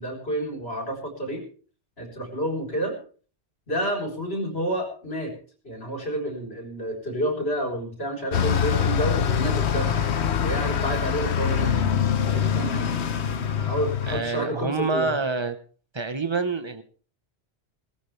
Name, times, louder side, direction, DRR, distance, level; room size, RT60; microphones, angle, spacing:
voice 1, 0.0-1.4 2.0-2.9 3.7-5.3 5.6-10.0 10.4-12.9 13.6-15.1, right 1 dB, 70° left, 1 dB, 4.5 m, -29 dB
Bus, 8.3-14.2, left 8 dB, 90° left, 1.2 m, -24 dB
voice 2, 14.1-15.6 15.9-16.8, right 4 dB, 25° right, 10 dB, 1.2 m, -27 dB
19.0 x 14.0 x 3.4 m, 0.41 s
omnidirectional pair, 1.1 m